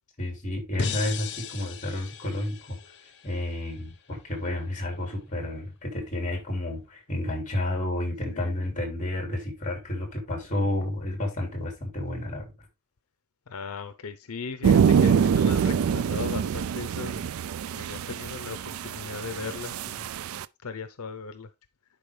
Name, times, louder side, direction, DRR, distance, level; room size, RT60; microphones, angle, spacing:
voice 1, 0.2-2.8 3.2-12.5, left 1 dB, 35° left, 3.0 m, -31 dB
sound 1, 0.8-3.9, left 5 dB, 55° left, 0.9 m, -37 dB
voice 2, 13.5-17.3 17.8-20.1 20.6-21.5, left 4 dB, 90° left, 0.7 m, -37 dB
sound 2, 14.6-20.5, right 7 dB, 70° right, 0.3 m, -25 dB
10.5 x 4.7 x 3.2 m
head